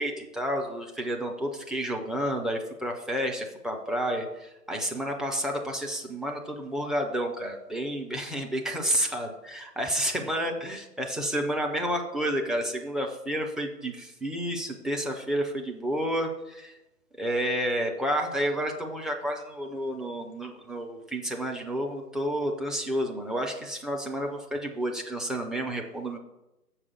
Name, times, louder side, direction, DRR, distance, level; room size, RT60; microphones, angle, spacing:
voice 1, 0.0-16.8 17.2-26.2, equal, ahead, 1 dB, 0.4 m, -30 dB
7.1 x 4.8 x 7.0 m, 0.95 s
figure-of-eight pair, 165°, 49 cm